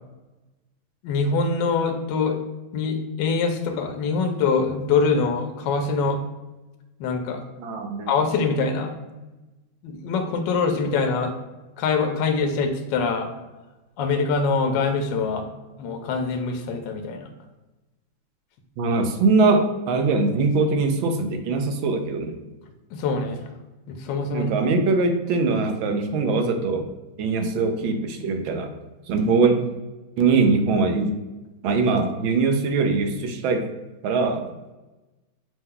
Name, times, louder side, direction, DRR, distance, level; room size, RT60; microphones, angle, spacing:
voice 1, 1.0-2.4 2.7-6.2 7.0-7.4 8.1-8.9 9.8-11.3 11.8-13.3 14.0-15.4 15.8-17.3 22.9-23.4 23.9-24.5, left 4 dB, 75° left, 5 dB, 1.2 m, -24 dB
voice 2, 7.6-8.1 18.8-22.4 24.3-26.8 27.2-28.7 29.1-29.6 30.2-31.1 31.6-33.6 34.0-34.5, right 4 dB, 80° right, 5 dB, 1.4 m, -22 dB
5.6 x 2.2 x 3.6 m, 1.1 s
omnidirectional pair, 2.2 m